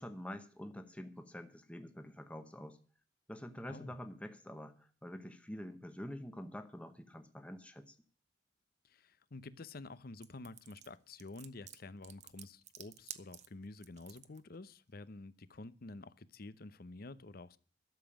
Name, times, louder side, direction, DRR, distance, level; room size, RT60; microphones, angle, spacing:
voice 1, 0.0-2.8 3.3-7.9, equal, 5° left, 1.0 m, -47 dB
voice 2, 8.8-17.6, left 2 dB, 55° left, 0.8 m, -50 dB
sound 1, 10.2-14.4, right 10 dB, 40° right, 0.9 m, -51 dB
12.5 x 7.3 x 8.9 m
head